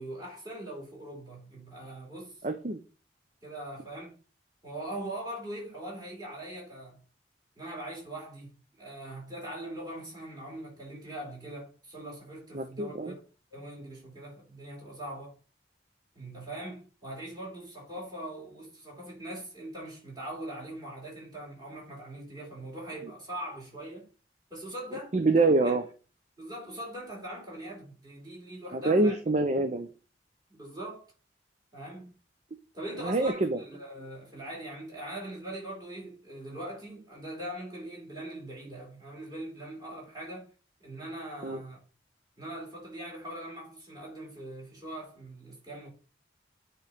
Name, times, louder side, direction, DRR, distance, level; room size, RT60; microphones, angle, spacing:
voice 1, 0.0-2.4 3.4-4.1 4.6-7.0 7.6-13.1 13.5-15.3 16.1-24.1 24.5-25.8 26.4-29.2 30.5-31.1 31.7-32.1 32.7-40.5 40.8-41.8 42.4-45.9, right 1 dB, 20° right, 3.9 m, -41 dB
voice 2, 2.4-2.8 12.5-13.1 25.1-25.8 28.7-29.9 33.0-33.6 41.4-41.6, right 2 dB, 40° right, 0.6 m, -25 dB
9.3 x 3.1 x 5.0 m
head